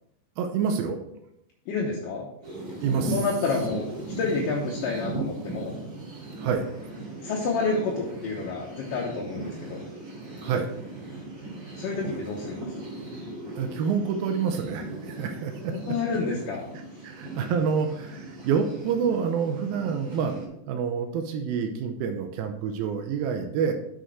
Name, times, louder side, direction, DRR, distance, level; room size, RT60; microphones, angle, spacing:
voice 1, 0.4-1.0 2.8-3.2 6.4-6.6 10.4-10.7 13.6-15.8 17.0-20.3 20.7-23.7, right 6 dB, 85° right, 5 dB, 2.5 m, -27 dB
voice 2, 1.7-2.3 3.1-3.9 4.2-5.7 7.2-9.8 11.8-12.7 15.9-16.6, left 4 dB, 70° left, -2 dB, 2.4 m, -29 dB
sound 1, 2.4-20.5, right 2 dB, 35° right, 2.9 m, -38 dB
6.5 x 6.4 x 4.6 m, 0.78 s
omnidirectional pair, 4.2 m